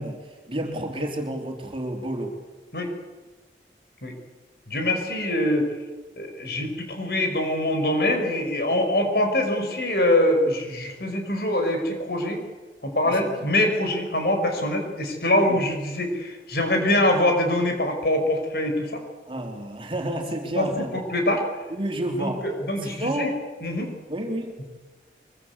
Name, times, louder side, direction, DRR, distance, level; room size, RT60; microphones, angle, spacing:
voice 1, 0.0-2.3 13.0-13.3 15.5-15.7 19.3-21.0 21.7-22.5 22.8-23.3 24.1-24.5, right 1 dB, 30° right, 3 dB, 3.5 m, -30 dB
voice 2, 4.7-5.7 6.2-12.4 12.8-19.0 20.6-21.4 22.1-23.3 23.6-23.9, left 1 dB, 60° left, 4 dB, 5.5 m, -24 dB
24.5 x 23.5 x 8.2 m, 1.2 s
head